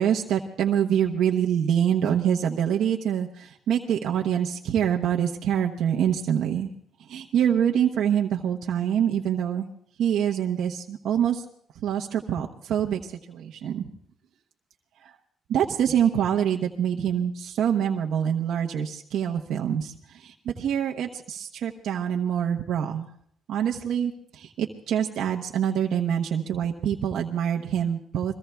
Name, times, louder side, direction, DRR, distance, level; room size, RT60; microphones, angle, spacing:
voice 1, 0.0-6.7 7.0-9.7 10.0-11.4 11.8-13.9 15.0-15.1 15.5-23.1 23.5-28.3, right 9 dB, 80° right, 0 dB, 0.9 m, -25 dB
27.5 x 22.0 x 2.3 m, 0.68 s
cardioid pair, 90°, 0 cm